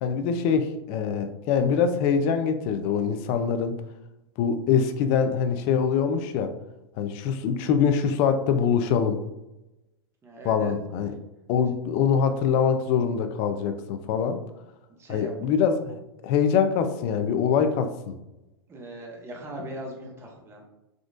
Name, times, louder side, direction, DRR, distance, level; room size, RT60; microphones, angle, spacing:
voice 1, 0.0-3.8 4.4-6.5 7.0-9.2 10.4-11.1 11.5-14.4 15.1-18.1, left 7 dB, 45° left, 8 dB, 0.4 m, -24 dB
voice 2, 10.2-10.7 15.0-15.3 18.7-20.7, equal, 20° right, 0 dB, 0.9 m, -39 dB
3.7 x 2.3 x 2.4 m, 0.95 s
hypercardioid pair, 100°, 13 cm